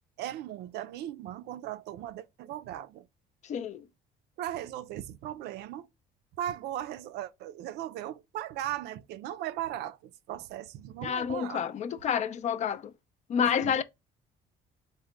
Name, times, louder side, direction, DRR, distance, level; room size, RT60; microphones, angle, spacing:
voice 1, 0.2-3.1 4.4-5.9 6.4-11.7 13.4-13.8, right 12 dB, 75° right, 0.4 m, -38 dB
voice 2, 3.4-3.8 11.0-12.9 13.3-13.8, left 7 dB, 45° left, 0.4 m, -29 dB
3.8 x 2.1 x 3.1 m
cardioid pair, 110°, 17 cm